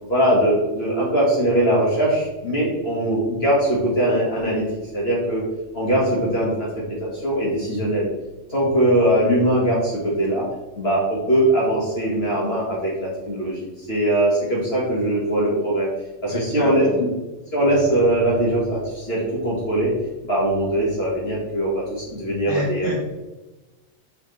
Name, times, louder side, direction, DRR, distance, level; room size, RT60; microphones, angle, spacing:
voice 1, 0.0-4.6 4.9-5.5 5.7-8.0 8.5-10.4 10.8-15.9 16.2-17.1 17.5-19.9 20.2-23.0, right 1 dB, 45° left, -6 dB, 2.0 m, -21 dB
voice 2, 16.3-17.0 22.5-23.0, left 1 dB, 25° left, -4 dB, 2.2 m, -29 dB
6.5 x 6.2 x 3.3 m, 1.1 s
omnidirectional pair, 1.4 m